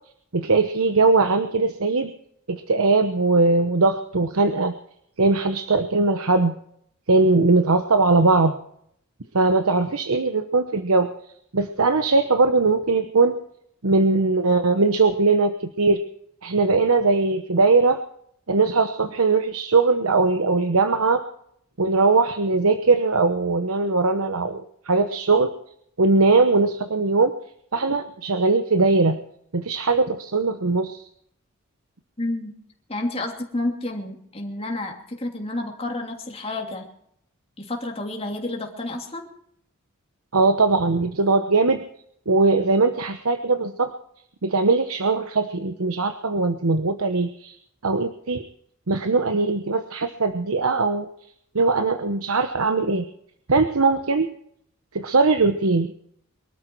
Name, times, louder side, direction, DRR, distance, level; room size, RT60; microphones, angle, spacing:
voice 1, 0.3-2.1 2.5-4.7 5.2-6.6 7.1-8.6 9.3-11.1 11.5-13.4 13.8-16.0 16.4-18.0 18.5-21.2 21.8-25.5 26.0-27.3 27.7-29.2 29.5-31.0 40.3-41.8 42.3-43.9 44.4-47.5 47.8-48.4 48.9-51.1 51.5-53.1 53.5-54.3 54.9-55.9, right 3 dB, 85° right, 9 dB, 1.0 m, -20 dB
voice 2, 32.2-32.5 32.9-36.9 37.6-39.3, left 2 dB, 25° left, 1 dB, 2.8 m, -30 dB
23.0 x 13.0 x 4.6 m, 0.69 s
head